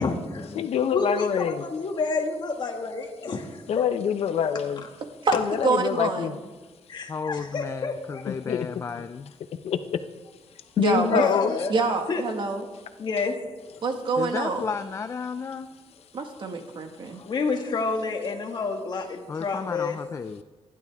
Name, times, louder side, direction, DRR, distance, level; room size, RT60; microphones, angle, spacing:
voice 1, 0.0-0.5 0.9-3.6 6.9-8.2 11.1-11.7 12.1-12.2 13.0-13.8 17.1-20.0, left 4 dB, 45° left, 2 dB, 2.0 m, -29 dB
voice 2, 0.6-1.6 3.7-4.8 5.3-6.4 8.3-8.7 9.6-10.0 10.8-11.6, left 8 dB, 70° left, 9 dB, 0.8 m, -25 dB
voice 3, 5.6-6.3 10.8-11.2 11.7-12.7 13.8-14.7 16.1-17.2, right 4 dB, 50° right, 4 dB, 1.7 m, -26 dB
voice 4, 7.1-9.3 14.2-15.7 19.3-20.4, left 5 dB, 25° left, 9 dB, 0.4 m, -33 dB
28.0 x 11.5 x 3.6 m, 1.2 s
wide cardioid pair, 165°, 11 cm